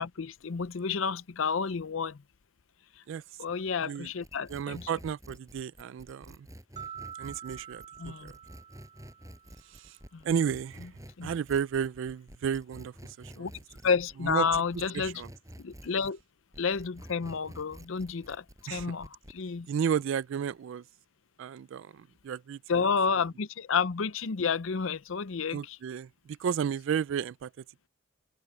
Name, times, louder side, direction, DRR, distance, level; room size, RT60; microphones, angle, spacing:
voice 1, 0.0-2.2 3.0-3.1 3.4-4.9 8.0-8.3 10.1-10.2 11.2-11.3 13.4-13.5 13.8-15.2 15.6-16.2 16.6-19.7 22.7-25.8, left 5 dB, 70° left, 0.6 m, -30 dB
sound 1, 4.0-16.2 16.5-19.4, equal, 15° right, 7.2 m, -50 dB
voice 2, 4.5-6.5 7.2-8.3 9.6-10.0 10.2-10.9 11.2-13.5 14.2-14.5 14.9-15.3 18.7-18.9 19.7-20.8 21.4-22.9 25.5-27.5, right 7 dB, 65° right, 0.3 m, -33 dB
sound 2, 6.8-9.9, right 8 dB, 35° right, 1.3 m, -46 dB
open air
head